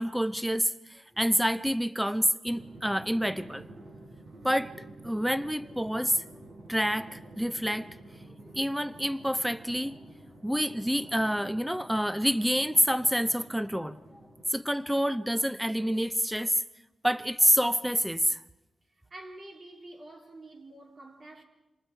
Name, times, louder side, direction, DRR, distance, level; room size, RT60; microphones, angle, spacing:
voice 1, 0.0-3.7 4.4-4.7 5.0-6.2 6.7-7.9 8.5-10.0 10.4-14.0 14.5-16.6 17.0-18.4, equal, 5° right, 0.7 m, -27 dB
Drum, 2.5-14.9, right 1 dB, 65° right, 6.4 m, -50 dB
voice 2, 18.9-21.4, right 2 dB, 40° right, 4.1 m, -47 dB
29.5 x 27.0 x 4.6 m
wide cardioid pair, 120°, 0 cm